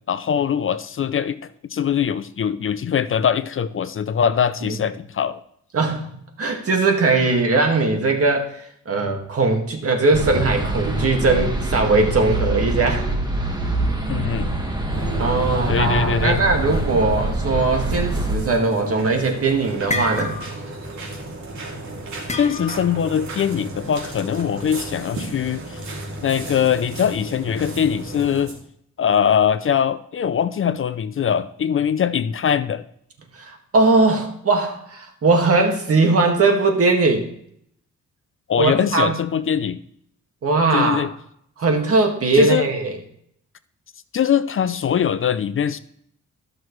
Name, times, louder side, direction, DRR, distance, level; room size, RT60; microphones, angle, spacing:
voice 1, 0.1-5.4 14.1-14.5 15.7-16.4 22.4-25.8 26.2-28.5 29.0-32.8 38.5-39.8 40.7-41.1 42.3-42.7 44.1-45.8, left 8 dB, 45° left, 14 dB, 0.5 m, -22 dB
voice 2, 5.7-6.1 6.4-13.1 15.2-20.4 33.3-37.3 38.6-39.2 40.4-41.1 41.6-43.0, right 3 dB, 50° right, 3 dB, 1.9 m, -19 dB
sound 1, 10.1-18.4, right 2 dB, 15° right, 1.7 m, -24 dB
sound 2, 14.9-28.6, right 1 dB, 75° right, 2.8 m, -34 dB
sound 3, 19.9-20.7 21.0-21.3 22.3-23.0, left 2 dB, 25° left, 1.2 m, -28 dB
14.5 x 6.2 x 3.2 m, 0.68 s
cardioid pair, 85°, 29 cm